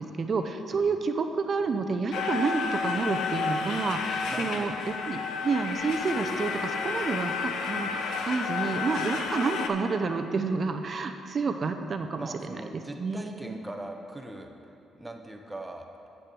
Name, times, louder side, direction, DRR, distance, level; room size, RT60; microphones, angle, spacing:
voice 1, 0.0-13.6, right 4 dB, 45° right, 7 dB, 0.6 m, -30 dB
sound 1, 2.1-9.7, left 5 dB, 80° left, 0.7 m, -31 dB
voice 2, 4.3-4.8 12.2-14.5 14.9-15.9, right 1 dB, 10° right, 3 dB, 1.0 m, -41 dB
8.5 x 6.4 x 6.2 m, 2.8 s
cardioid pair, 90°, 0 cm